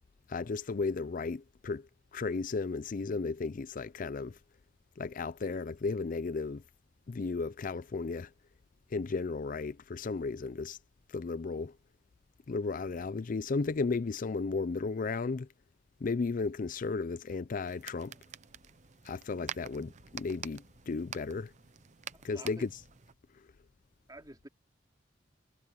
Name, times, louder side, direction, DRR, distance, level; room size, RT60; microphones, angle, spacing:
voice 1, 0.3-4.4 5.0-6.6 7.1-8.3 8.9-10.8 11.1-11.7 12.5-15.5 16.0-18.1 19.1-21.5 22.2-22.7, left 4 dB, 45° left, 0.4 m, -34 dB
sound 1, 17.7-23.1, right 8 dB, 40° right, 0.6 m, -47 dB
voice 2, 22.1-22.7 24.1-24.5, right 1 dB, 20° right, 3.0 m, -49 dB
head